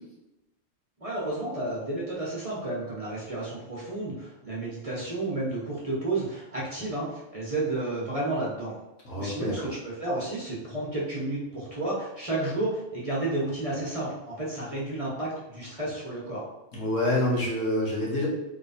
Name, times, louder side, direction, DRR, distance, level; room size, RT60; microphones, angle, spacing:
voice 1, 1.0-8.8 9.2-16.4, right 2 dB, 30° right, -6 dB, 1.0 m, -31 dB
voice 2, 9.1-9.7 16.7-18.3, left 1 dB, 70° left, -6 dB, 1.7 m, -27 dB
3.6 x 3.2 x 4.1 m, 0.97 s
omnidirectional pair, 1.4 m